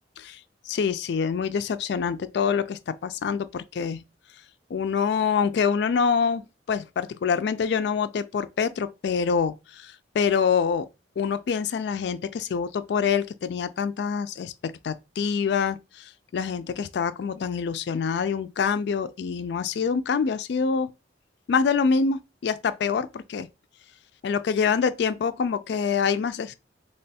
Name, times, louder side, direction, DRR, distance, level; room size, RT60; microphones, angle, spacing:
voice 1, 0.7-4.0 4.7-6.4 6.7-10.9 11.2-20.9 21.5-23.5 24.2-26.6, left 6 dB, 65° left, 0.3 m, -26 dB
3.3 x 2.3 x 4.1 m
head